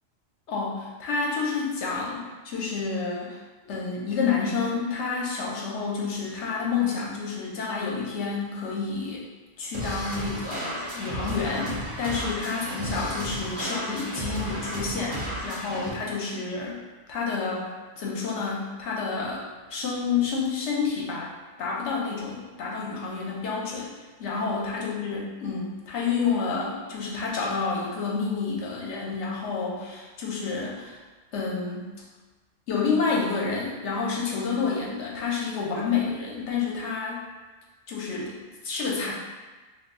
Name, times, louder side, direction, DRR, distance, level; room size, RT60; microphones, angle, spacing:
voice 1, 0.5-3.4 3.6-9.2 9.6-16.8 17.1-19.4 19.7-21.3 21.6-23.9 24.2-31.0 31.3-31.9 32.7-37.2 37.9-38.3 38.6-39.1, left 5 dB, 70° left, -4 dB, 0.9 m, -29 dB
sound 1, 9.7-15.9, right 1 dB, 35° right, 0.5 m, -34 dB
2.5 x 2.2 x 3.6 m, 1.3 s
omnidirectional pair, 1.3 m